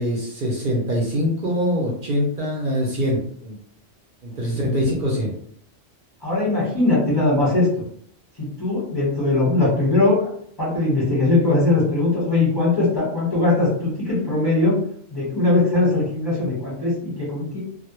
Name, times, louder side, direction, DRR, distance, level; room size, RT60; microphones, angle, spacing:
voice 1, 0.0-3.6 4.2-5.3, equal, 55° right, -2 dB, 0.6 m, -23 dB
voice 2, 6.2-7.7 8.4-10.3 10.6-14.8 15.1-17.6, left 2 dB, 20° left, -7 dB, 0.9 m, -20 dB
2.2 x 2.0 x 2.9 m, 0.64 s
omnidirectional pair, 1.3 m